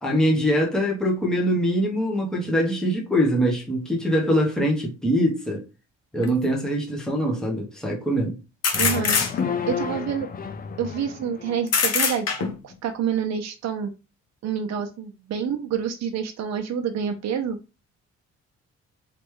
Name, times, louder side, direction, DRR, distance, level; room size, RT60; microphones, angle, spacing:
voice 1, 0.0-5.6 6.1-8.4, equal, ahead, 1.1 m, -23 dB
sound 1, 6.2-6.3 8.6-9.7 11.7-12.7, left 5 dB, 55° left, 1.0 m, -23 dB
sound 2, 8.7-11.7, left 6 dB, 30° left, 0.4 m, -32 dB
voice 2, 8.8-9.1 9.7-10.3 10.8-13.9 14.4-17.6, right 7 dB, 60° right, 0.7 m, -28 dB
3.3 x 3.1 x 3.1 m
cardioid pair, 90°, 30 cm